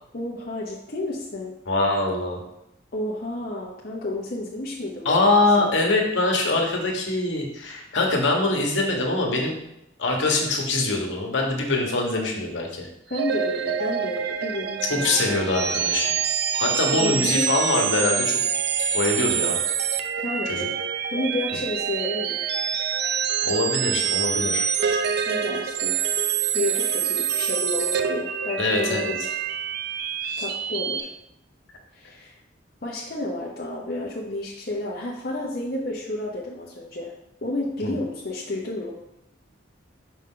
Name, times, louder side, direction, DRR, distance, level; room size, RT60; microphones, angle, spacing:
voice 1, 0.1-1.5 2.9-5.7 13.1-15.7 16.9-17.5 20.2-20.7 21.1-22.5 25.3-26.0 26.5-29.4 30.4-31.1 31.9-32.4 32.8-37.1 37.4-39.0, left 2 dB, 50° left, -5 dB, 0.8 m, -31 dB
voice 2, 1.7-2.4 5.0-9.6 10.0-12.9 14.9-16.1 16.6-18.4 18.9-19.6 20.5-20.7 23.4-24.7 28.6-29.1 30.2-30.4 37.8-38.0, left 2 dB, 70° left, 0 dB, 1.3 m, -23 dB
sound 1, 13.1-31.0, right 8 dB, 55° right, 0.4 m, -26 dB
5.5 x 5.3 x 3.8 m, 0.83 s
head